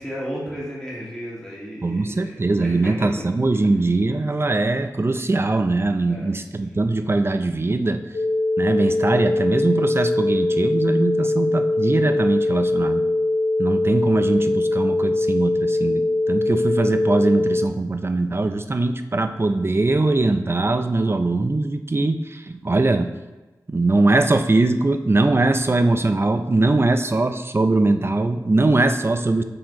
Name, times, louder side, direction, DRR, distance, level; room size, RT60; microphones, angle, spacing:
voice 1, 0.0-2.9 6.1-6.3, equal, 10° left, -6 dB, 2.1 m, -34 dB
voice 2, 1.8-8.0 8.6-13.1 13.6-23.1 23.7-29.4, right 2 dB, 35° right, 8 dB, 0.4 m, -21 dB
sound 1, 8.1-17.7, left 2 dB, 90° left, 0.6 m, -22 dB
6.3 x 4.5 x 4.1 m, 1.1 s
wide cardioid pair, 85°, 7 cm